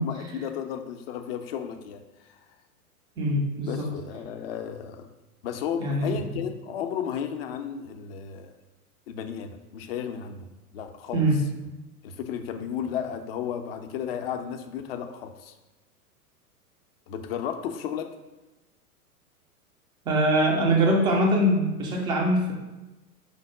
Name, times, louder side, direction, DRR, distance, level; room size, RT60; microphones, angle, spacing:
voice 1, 0.0-2.0 2.3-2.5 3.6-5.1 5.4-8.5 9.1-10.5 10.7-11.2 12.0-15.5 17.1-18.1, left 8 dB, 45° left, 7 dB, 0.5 m, -33 dB
voice 2, 3.2-3.9 5.8-6.2 11.1-11.4 20.1-22.5, right 1 dB, 10° right, 1 dB, 0.4 m, -23 dB
5.1 x 2.0 x 4.6 m, 1.1 s
figure-of-eight pair, 105°, 45 cm